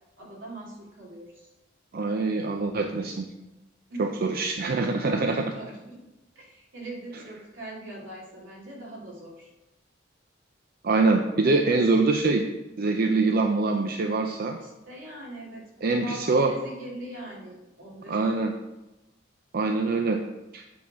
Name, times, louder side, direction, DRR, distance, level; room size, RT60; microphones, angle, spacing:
voice 1, 0.2-1.5 3.9-4.2 5.2-6.1 6.4-9.5 14.6-18.3, right 1 dB, 80° right, -3 dB, 2.5 m, -42 dB
voice 2, 1.9-3.2 4.0-5.5 10.8-12.5 12.8-14.6 15.8-16.5 18.1-18.5 19.5-20.2 20.5-20.6, right 3 dB, 50° right, 4 dB, 0.5 m, -24 dB
8.5 x 3.9 x 5.7 m, 1.0 s
head